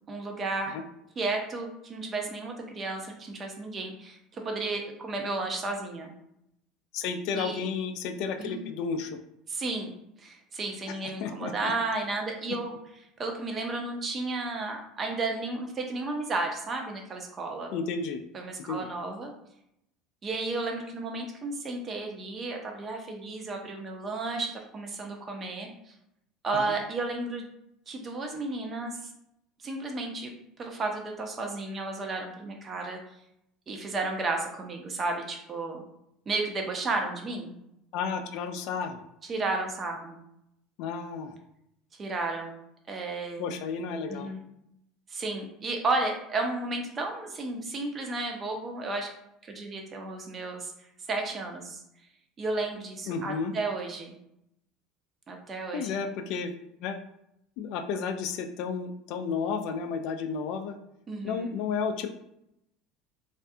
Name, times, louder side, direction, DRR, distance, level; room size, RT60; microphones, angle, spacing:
voice 1, 0.1-0.7 1.2-6.1 7.3-7.6 8.4-8.6 9.5-12.8 13.2-17.7 18.3-19.3 20.2-25.9 26.4-27.5 27.9-29.0 29.6-30.3 30.6-33.0 33.7-35.8 36.3-37.5 39.3-40.2 42.0-42.5 42.9-43.6 44.1-44.4 45.1-49.1 49.4-50.7 51.1-51.8 52.4-54.1 55.3-56.0 61.1-61.5, right 3 dB, 35° right, 3 dB, 0.6 m, -33 dB
voice 2, 6.9-9.2 11.2-11.7 17.7-18.2 18.7-18.9 26.5-26.7 37.9-39.0 40.8-41.4 43.4-44.3 53.1-53.5 55.7-56.5 56.8-57.0 57.6-60.8 61.2-62.1, left 5 dB, 65° left, 6 dB, 0.3 m, -32 dB
2.4 x 2.2 x 2.6 m, 0.79 s
supercardioid pair, 100°, 0 cm